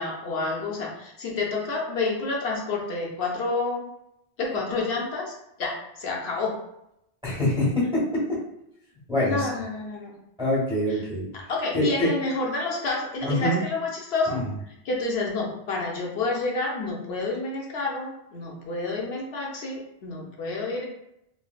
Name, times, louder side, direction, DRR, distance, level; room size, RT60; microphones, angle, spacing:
voice 1, 0.0-3.9 4.4-6.6 9.2-10.2 11.3-14.4 14.8-20.8, left 3 dB, 80° left, -2 dB, 0.9 m, -29 dB
voice 2, 7.2-8.2 9.1-9.5 10.4-11.3 11.7-12.1 13.2-13.6 14.3-14.5, left 1 dB, 5° right, -6 dB, 1.3 m, -24 dB
3.2 x 2.6 x 2.3 m, 0.81 s
omnidirectional pair, 1.1 m